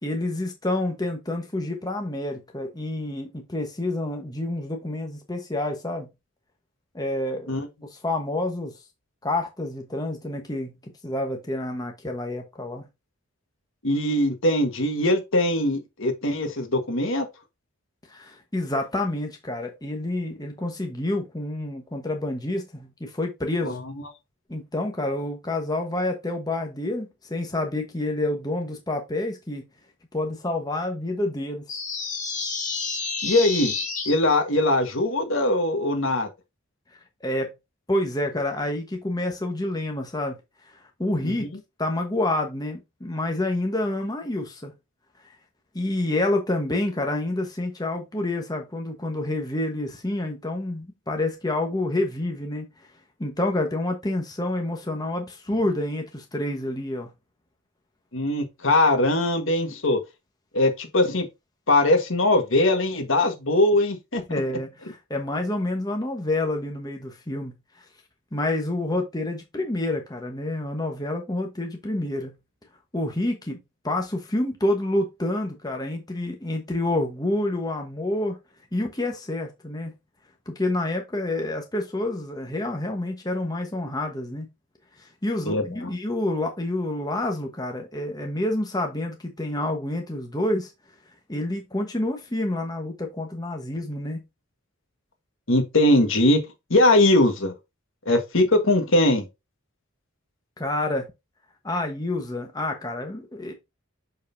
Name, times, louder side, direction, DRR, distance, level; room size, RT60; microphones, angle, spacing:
voice 1, 0.0-6.1 6.9-7.6 7.9-8.8 9.2-12.8 18.1-23.8 24.5-29.6 30.1-31.7 37.2-37.5 37.9-40.4 40.6-41.5 41.8-44.7 45.7-52.9 53.2-57.1 64.3-67.8 68.3-72.4 72.9-78.4 78.7-79.9 80.5-84.5 85.0-90.7 91.3-94.2 100.6-101.1 101.6-103.5, left 1 dB, 20° left, 1.1 m, -28 dB
voice 2, 13.8-17.2 23.6-23.8 33.2-33.7 34.0-36.3 41.2-41.5 58.1-60.0 60.5-61.3 61.7-64.2 85.4-85.9 95.5-96.4 96.7-97.5 98.0-99.3, left 1 dB, 65° left, 1.5 m, -21 dB
sound 1, 31.7-34.1, left 4 dB, 35° left, 2.1 m, -29 dB
6.5 x 5.6 x 2.7 m
head